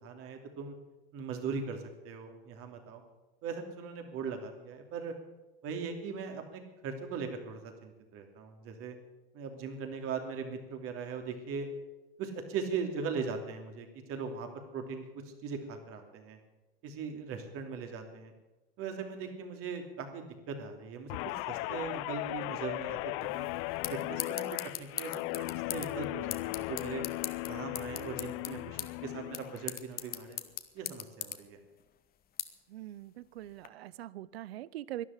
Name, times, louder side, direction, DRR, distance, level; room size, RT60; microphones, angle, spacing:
voice 1, 0.0-0.7 1.1-3.0 3.4-5.1 5.6-8.9 9.3-11.7 12.2-16.4 16.8-18.3 18.8-21.2 21.5-23.5 23.9-27.0 27.5-30.4 30.7-31.6, right 5 dB, 45° right, 5 dB, 3.0 m, -39 dB
Guitar, 21.1-29.7 30.1-30.4, left 20 dB, 45° left, 0.5 m, -37 dB
sound 1, 23.2-33.7, left 10 dB, 30° left, 1.2 m, -42 dB
voice 2, 32.7-35.1, right 13 dB, 80° right, 21 dB, 0.7 m, -42 dB
12.5 x 11.0 x 10.0 m, 1.1 s
hypercardioid pair, 110°, 30 cm